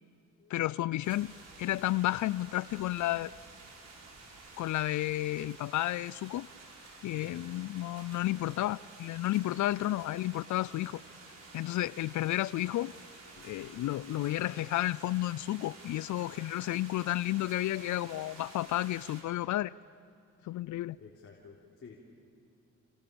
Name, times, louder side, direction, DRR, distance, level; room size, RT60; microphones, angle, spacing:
voice 1, 0.5-1.3 1.6-3.3 4.6-6.5 7.0-11.0 11.5-12.9 13.4-19.7 20.4-21.0, left 15 dB, 70° left, 21 dB, 0.5 m, -32 dB
sound 1, 1.0-19.2, right 3 dB, 55° right, 6.7 m, -51 dB
voice 2, 7.1-7.6 13.3-13.6 21.0-22.0, left 5 dB, 45° left, -2 dB, 3.8 m, -53 dB
28.5 x 28.5 x 7.1 m, 2.8 s
cardioid pair, 75°, 31 cm